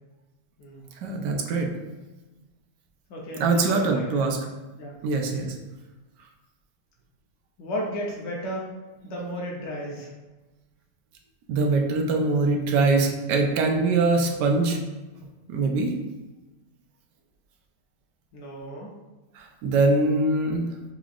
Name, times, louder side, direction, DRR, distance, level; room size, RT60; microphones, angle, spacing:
voice 1, 1.0-1.7 3.4-4.4 5.0-5.5 11.5-14.8 15.5-15.9 19.4-20.7, right 3 dB, 75° right, 3 dB, 1.3 m, -23 dB
voice 2, 3.1-4.3 4.8-5.0 7.6-8.7 9.0-10.1 18.3-18.9, equal, 80° left, -3 dB, 1.5 m, -34 dB
6.1 x 3.1 x 2.4 m, 1.1 s
omnidirectional pair, 1.9 m